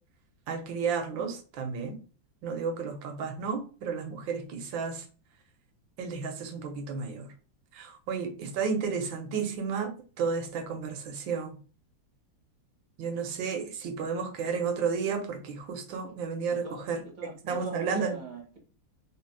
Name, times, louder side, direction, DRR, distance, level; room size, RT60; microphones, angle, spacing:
voice 1, 0.5-2.0 2.4-5.1 6.0-7.3 7.7-11.5 13.0-17.0 17.5-18.1, right 5 dB, 80° right, 6 dB, 1.6 m, -32 dB
voice 2, 16.5-18.6, right 3 dB, 30° right, 1 dB, 1.1 m, -42 dB
3.4 x 3.2 x 4.6 m, 0.38 s
omnidirectional pair, 2.1 m